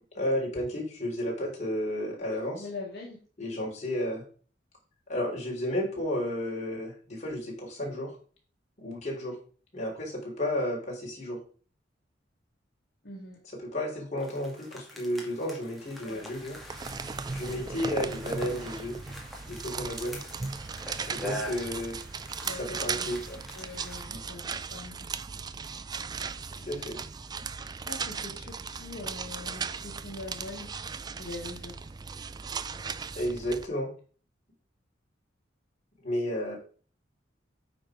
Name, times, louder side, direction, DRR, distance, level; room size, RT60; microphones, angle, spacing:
voice 1, 0.1-2.7 3.4-4.2 5.1-8.2 8.8-9.4 9.7-11.4 13.6-16.6 17.3-19.0 19.4-20.2 21.1-22.0 22.8-23.4 24.1-24.2 26.5-27.0 33.2-33.9 36.0-36.6, left 1 dB, 35° left, -3 dB, 3.4 m, -32 dB
voice 2, 2.6-3.2 13.0-13.4 16.0-16.2 22.4-23.1 23.5-25.1 27.6-30.7 31.2-31.7, left 3 dB, 60° left, -3 dB, 1.9 m, -42 dB
sound 1, 14.2-24.0, equal, ahead, 1.8 m, -44 dB
sound 2, 16.4-33.7, right 5 dB, 20° right, 0.3 m, -37 dB
8.9 x 4.6 x 4.9 m, 0.41 s
head